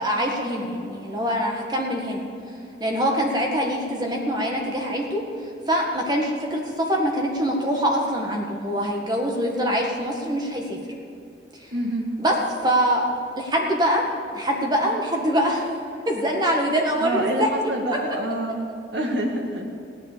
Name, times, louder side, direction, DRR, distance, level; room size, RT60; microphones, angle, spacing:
voice 1, 0.0-2.2 2.8-5.2 5.7-10.8 12.2-12.4 12.6-13.1 13.4-15.7 16.1-17.5, equal, 20° right, 0 dB, 1.8 m, -24 dB
voice 2, 11.7-12.1 17.0-19.7, right 1 dB, 70° right, 1 dB, 2.0 m, -27 dB
16.0 x 10.0 x 6.8 m, 2.4 s
head